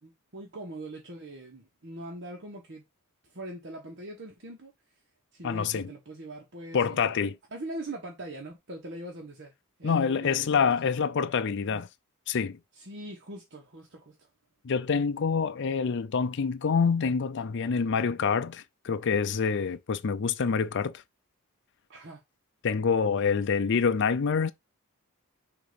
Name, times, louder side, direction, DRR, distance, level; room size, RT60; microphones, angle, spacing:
voice 1, 0.0-2.8 3.3-4.7 5.3-7.2 7.5-9.5 9.8-10.8 12.8-14.3 21.9-22.2, right 1 dB, 55° right, 1.3 m, -42 dB
voice 2, 5.4-5.9 6.7-7.4 9.8-11.9 12.3-12.6 14.6-21.0 22.6-24.5, left 5 dB, 55° left, 0.5 m, -26 dB
6.7 x 2.9 x 5.1 m
head